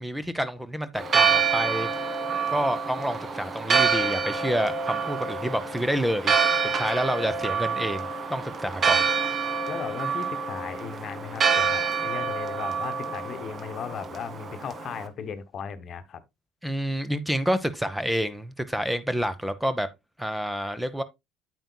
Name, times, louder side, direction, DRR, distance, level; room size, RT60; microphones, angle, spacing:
voice 1, 0.0-1.9 2.5-6.3 6.7-9.0 16.6-19.9 20.2-21.0, equal, 5° right, 0.8 m, -28 dB
Church bell, 0.9-15.0, right 5 dB, 40° right, 1.3 m, -27 dB
voice 2, 9.7-16.2, left 7 dB, 45° left, 1.1 m, -37 dB
9.0 x 8.3 x 2.2 m
hypercardioid pair, 60°, 0 cm